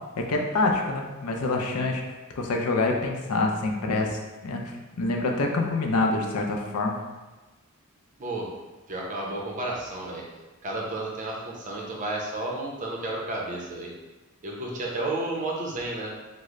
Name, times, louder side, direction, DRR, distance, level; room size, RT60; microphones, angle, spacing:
voice 1, 0.2-2.0 2.4-7.0, left 2 dB, 85° left, 1 dB, 0.5 m, -26 dB
voice 2, 8.9-10.2 10.6-13.9 14.4-16.1, right 2 dB, 35° right, -2 dB, 0.6 m, -32 dB
3.1 x 2.0 x 3.6 m, 1.2 s
head